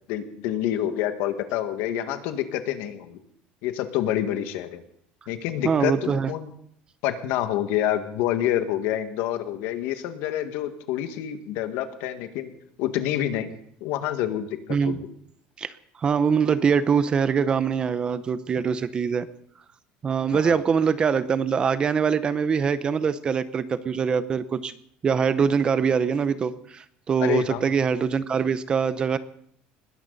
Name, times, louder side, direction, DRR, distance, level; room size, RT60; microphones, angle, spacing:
voice 1, 0.1-3.2 3.6-4.8 5.3-6.5 7.0-12.5 12.8-13.5 13.8-15.0 20.3-20.5 27.2-27.7, left 11 dB, 70° left, 8 dB, 1.7 m, -27 dB
voice 2, 5.6-6.3 14.7-15.0 15.6-15.7 16.0-19.3 20.0-24.7 25.0-29.2, right 6 dB, 25° right, 14 dB, 0.7 m, -23 dB
20.5 x 16.5 x 4.1 m, 0.67 s
cardioid pair, 165°, 4 cm